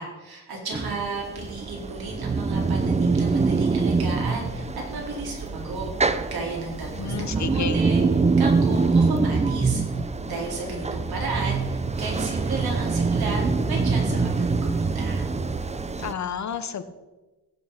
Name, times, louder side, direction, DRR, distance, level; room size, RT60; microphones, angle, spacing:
voice 1, 0.0-5.9 6.3-9.8 10.2-15.2, right 3 dB, 85° right, -1 dB, 4.6 m, -34 dB
sound 1, 0.7-16.1, right 4 dB, 20° right, 0.6 m, -24 dB
voice 2, 7.0-7.8 16.0-16.8, left 7 dB, 50° left, 11 dB, 1.0 m, -30 dB
16.0 x 8.7 x 5.8 m, 1.1 s
wide cardioid pair, 165°, 36 cm